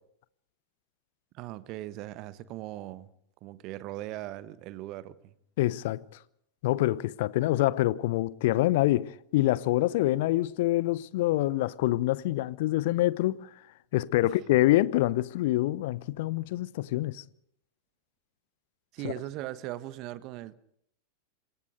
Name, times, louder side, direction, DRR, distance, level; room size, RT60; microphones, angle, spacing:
voice 1, 1.3-3.1 3.4-5.3 14.2-14.3 18.9-20.5, right 15 dB, 40° right, 1.2 m, -39 dB
voice 2, 5.6-6.0 6.6-13.5 13.9-17.2 19.0-19.1, left 16 dB, 50° left, 0.9 m, -26 dB
27.0 x 21.5 x 5.2 m
figure-of-eight pair, 90°, 0 cm